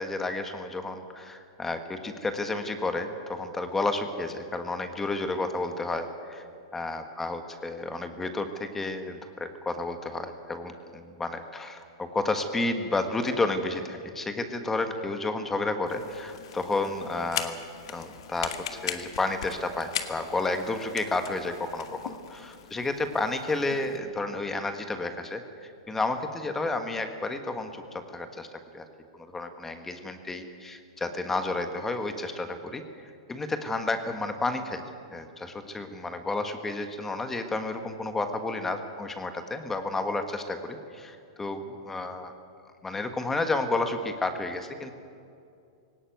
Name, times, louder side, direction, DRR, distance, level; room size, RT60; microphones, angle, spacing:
voice 1, 0.0-6.5 6.7-17.5 17.9-28.5 28.7-28.8 29.1-32.8 33.3-34.8 35.1-42.3 42.8-44.9, left 2 dB, 10° left, 7 dB, 1.6 m, -31 dB
sound 1, 15.9-24.0, left 9 dB, 75° left, 1.7 m, -39 dB
18.0 x 18.0 x 9.4 m, 2.4 s
hypercardioid pair, 140°, 3 cm